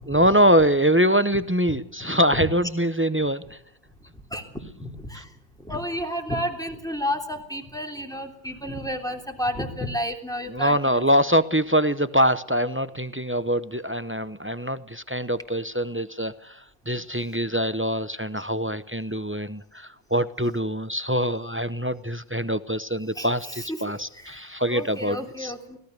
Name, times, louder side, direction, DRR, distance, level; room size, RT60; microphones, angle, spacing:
voice 1, 0.1-3.6 5.1-5.2 10.5-25.5, equal, 20° right, 13 dB, 0.3 m, -24 dB
voice 2, 4.8-5.3 5.7-11.1 23.2-23.8 24.2-24.3 24.7-25.8, equal, ahead, 2 dB, 3.3 m, -31 dB
25.5 x 18.0 x 6.7 m, 0.70 s
omnidirectional pair, 1.6 m